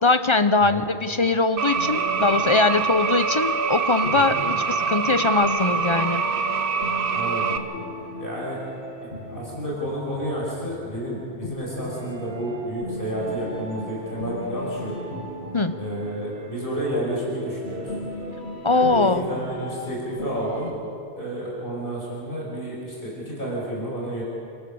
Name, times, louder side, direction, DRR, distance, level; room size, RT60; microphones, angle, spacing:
voice 1, 0.0-6.2 15.5-15.7 18.6-19.3, left 3 dB, 30° left, 11 dB, 0.7 m, -21 dB
sound 1, 1.6-7.6, right 5 dB, 60° right, 1.1 m, -25 dB
sound 2, 1.7-20.7, left 1 dB, 90° left, 3.0 m, -36 dB
voice 2, 7.1-7.6 8.2-8.6 9.0-15.0 15.8-17.9 18.7-20.7 21.2-24.2, right 1 dB, 55° left, -4 dB, 6.0 m, -30 dB
29.0 x 14.0 x 7.1 m, 2.6 s
omnidirectional pair, 1.1 m